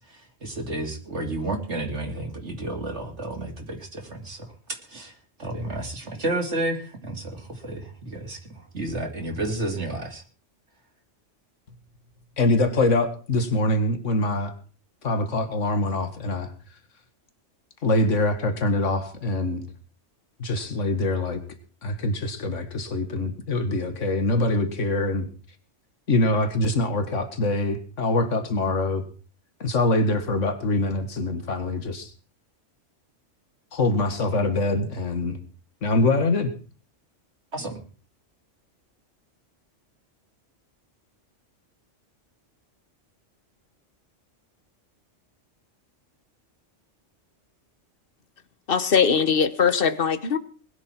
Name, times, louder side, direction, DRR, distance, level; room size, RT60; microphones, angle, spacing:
voice 1, 0.0-10.2 37.5-37.8, right 2 dB, 65° right, 3 dB, 3.1 m, -31 dB
voice 2, 12.4-14.5 15.0-16.5 17.8-19.6 20.4-21.4 21.8-25.3 26.1-29.0 29.6-32.1 33.7-35.4 35.8-36.5, left 2 dB, 80° left, 8 dB, 2.1 m, -24 dB
voice 3, 48.7-50.4, left 6 dB, 50° left, 13 dB, 1.3 m, -21 dB
21.0 x 11.5 x 4.5 m, 0.39 s
omnidirectional pair, 1.3 m